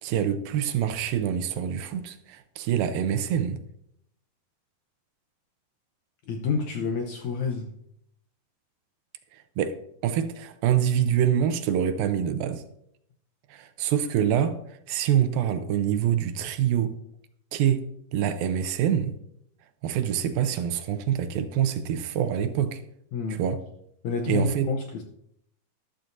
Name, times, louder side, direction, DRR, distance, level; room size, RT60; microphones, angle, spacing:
voice 1, 0.0-3.6 9.6-9.8 10.0-12.6 13.5-14.6 14.9-16.9 17.5-17.9 18.1-19.1 19.8-22.8 23.3-23.6 24.3-24.7, right 9 dB, 80° right, 2.4 m, -25 dB
voice 2, 6.3-7.7 23.1-23.4 24.0-25.0, left 4 dB, 75° left, 1.8 m, -28 dB
13.0 x 12.5 x 2.6 m
omnidirectional pair, 4.3 m